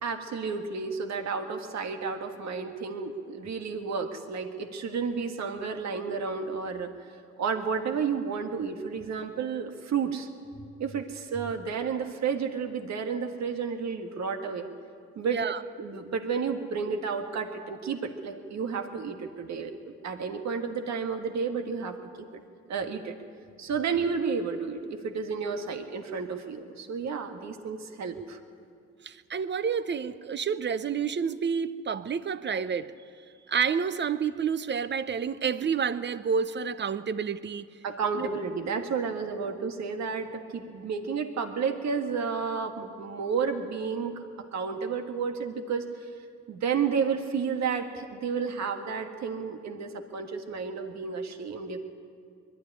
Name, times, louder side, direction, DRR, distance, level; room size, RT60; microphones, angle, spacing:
voice 1, 0.0-6.9 7.4-10.3 10.8-14.7 15.2-15.4 15.8-19.7 20.0-21.9 22.7-23.1 23.6-28.4 37.8-44.1 44.5-45.9 46.5-51.8, right 5 dB, 65° right, 5 dB, 1.7 m, -31 dB
voice 2, 15.2-15.6 29.0-32.9 33.5-37.7 38.2-38.3, right 6 dB, 35° right, 13 dB, 0.8 m, -29 dB
21.5 x 12.5 x 9.9 m, 2.3 s
cardioid pair, 90°, 30 cm